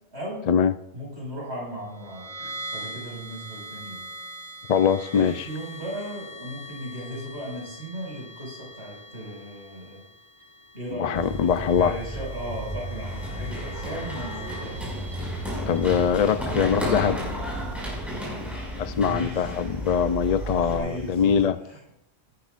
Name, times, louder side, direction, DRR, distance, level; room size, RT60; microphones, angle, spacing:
voice 1, 0.1-0.5 0.9-4.1 5.1-10.1 10.7-14.8 18.9-19.5 20.6-21.8, right 1 dB, 80° right, 5.7 m, -37 dB
sound 1, 1.9-16.2, equal, 15° left, 5.8 m, -42 dB
voice 2, 4.7-5.5 10.9-12.0 15.7-17.2 18.8-21.6, left 7 dB, 55° left, 0.4 m, -22 dB
sound 2, 11.1-21.5, right 1 dB, 50° right, 2.3 m, -37 dB
Run, 13.0-20.8, equal, ahead, 5.7 m, -33 dB
17.0 x 14.0 x 2.5 m
omnidirectional pair, 1.1 m